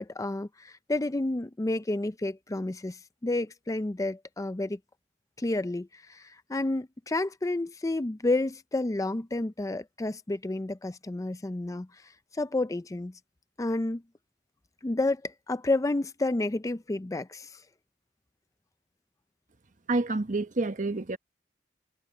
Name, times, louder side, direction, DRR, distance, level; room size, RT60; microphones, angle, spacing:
voice 1, 0.0-4.8 5.4-11.9 12.3-13.1 13.6-14.0 14.8-17.6, left 2 dB, 20° left, 0.4 m, -30 dB
voice 2, 19.9-21.2, right 2 dB, 45° right, 1.0 m, -28 dB
head